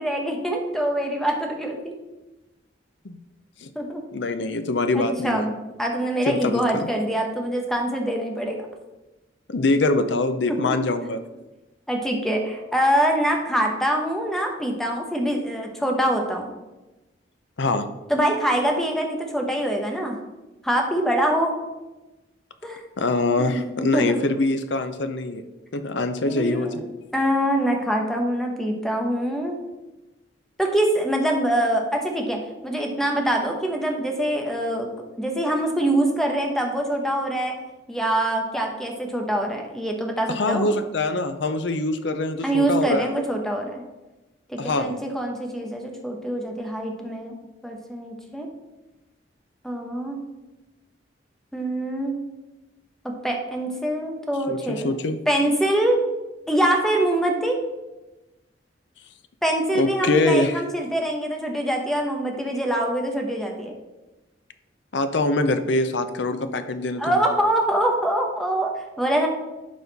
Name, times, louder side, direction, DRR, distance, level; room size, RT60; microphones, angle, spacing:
voice 1, 0.0-1.9 3.7-4.0 4.9-5.5 5.8-8.6 10.5-10.8 11.9-16.5 18.1-20.2 20.6-21.5 22.6-22.8 23.4-24.2 26.3-26.8 27.1-29.6 30.6-32.4 32.6-34.9 35.2-37.5 37.9-40.7 42.4-43.8 44.5-47.3 47.6-48.5 49.6-50.2 51.5-52.2 53.0-55.0 55.3-56.0 56.5-57.6 59.4-63.7 67.0-69.3, right 1 dB, ahead, 1 dB, 1.0 m, -24 dB
voice 2, 4.1-5.5 6.3-6.9 9.5-11.2 17.6-17.9 23.0-25.4 25.7-26.8 40.3-43.3 44.6-45.0 54.5-55.2 59.7-60.6 64.9-67.2, left 2 dB, 70° left, 9 dB, 0.6 m, -24 dB
11.5 x 4.1 x 4.0 m, 1.1 s
head